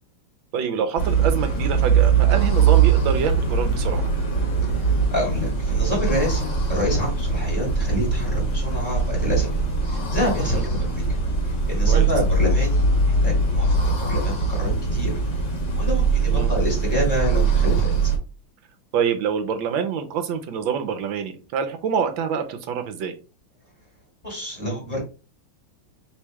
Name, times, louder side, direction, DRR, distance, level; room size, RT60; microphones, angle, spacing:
voice 1, 0.5-4.0 10.5-10.6 11.9-12.1 16.3-16.5 18.9-23.2, right 7 dB, 75° right, 8 dB, 1.4 m, -26 dB
sound 1, 1.0-18.2, right 4 dB, 40° left, 1.3 m, -21 dB
voice 2, 4.6-11.2 11.7-15.1 15.8-17.9 24.2-25.0, left 1 dB, 25° left, -4 dB, 2.1 m, -28 dB
3.5 x 3.2 x 4.6 m, 0.34 s
omnidirectional pair, 2.2 m